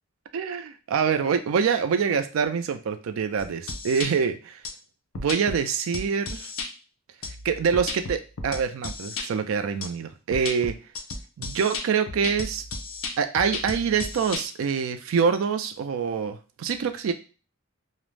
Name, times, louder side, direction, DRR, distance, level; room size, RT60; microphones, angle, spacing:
voice 1, 0.3-4.6 5.2-6.5 7.4-10.8 11.4-12.6 13.2-17.1, right 6 dB, 90° right, 9 dB, 0.4 m, -25 dB
sound 1, 3.4-4.1 4.6-4.7 5.1-5.6 5.9-6.7 7.2-9.3 9.8-9.9 10.3-14.4, left 3 dB, 90° left, 0.5 m, -34 dB
2.4 x 2.0 x 3.2 m, 0.34 s
head